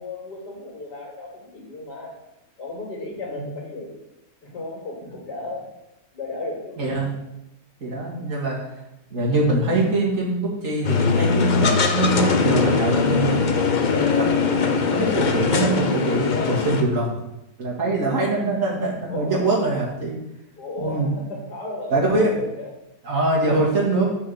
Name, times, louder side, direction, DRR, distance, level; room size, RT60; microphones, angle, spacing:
voice 1, 0.0-2.1 2.6-4.0 4.4-5.6 6.1-6.8 19.1-19.5 20.6-22.7 23.5-23.8, left 2 dB, 85° left, -2 dB, 3.2 m, -34 dB
voice 2, 6.8-7.1 7.8-8.6 9.1-13.7 14.1-14.3 14.9-17.1 17.6-20.1 20.8-21.1 21.9-22.3 23.0-24.0, right 2 dB, 50° right, -4 dB, 2.4 m, -23 dB
sound 1, 10.8-16.8, left 5 dB, 50° left, 0.6 m, -21 dB
7.2 x 4.9 x 6.9 m, 0.90 s
omnidirectional pair, 1.7 m